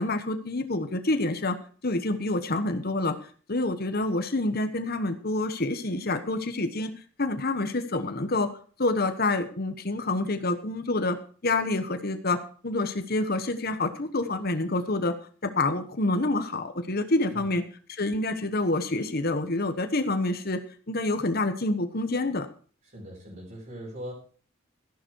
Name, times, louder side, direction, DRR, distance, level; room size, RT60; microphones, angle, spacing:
voice 1, 0.0-1.6 1.8-3.2 3.5-6.9 7.2-8.5 8.8-11.2 11.4-15.1 15.4-17.6 17.9-20.6 20.9-22.5, left 2 dB, 45° left, 8 dB, 1.2 m, -27 dB
voice 2, 22.8-24.1, equal, 40° right, -4 dB, 5.3 m, -40 dB
13.0 x 11.0 x 4.6 m, 0.41 s
head